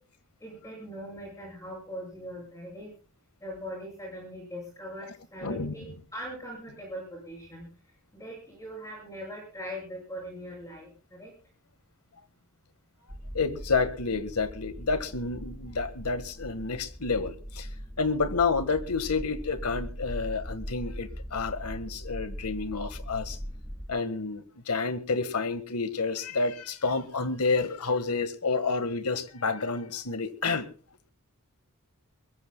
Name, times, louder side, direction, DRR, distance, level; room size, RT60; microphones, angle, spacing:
voice 1, 0.4-2.9 3.4-7.7 8.1-11.3, equal, 15° left, -2 dB, 7.6 m, -41 dB
voice 2, 5.4-6.0 13.3-17.7 18.0-23.4 23.9-30.7, left 4 dB, 85° left, 12 dB, 1.6 m, -29 dB
sound 1, 13.1-23.9, equal, 5° right, 1.5 m, -40 dB
22.5 x 22.0 x 2.3 m, 0.40 s
head